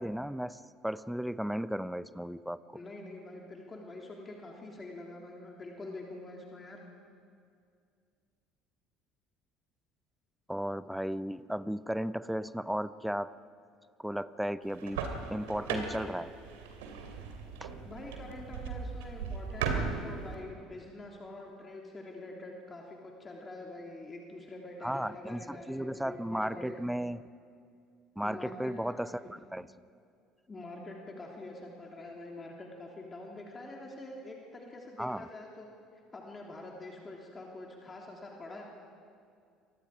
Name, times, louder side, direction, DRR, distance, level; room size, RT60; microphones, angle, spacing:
voice 1, 0.0-2.6 10.5-13.3 14.0-15.0 15.3-16.3 17.6-17.8 24.8-27.2 28.2-29.7 35.0-35.3, equal, ahead, 16 dB, 0.7 m, -35 dB
voice 2, 2.7-6.8 17.8-26.8 28.2-29.3 30.5-35.7 36.1-38.7, left 2 dB, 25° left, -1 dB, 3.4 m, -45 dB
sound 1, 14.6-20.3, right 5 dB, 70° right, 2.7 m, -37 dB
29.0 x 24.0 x 5.1 m, 2.3 s
figure-of-eight pair, 60°, 0 cm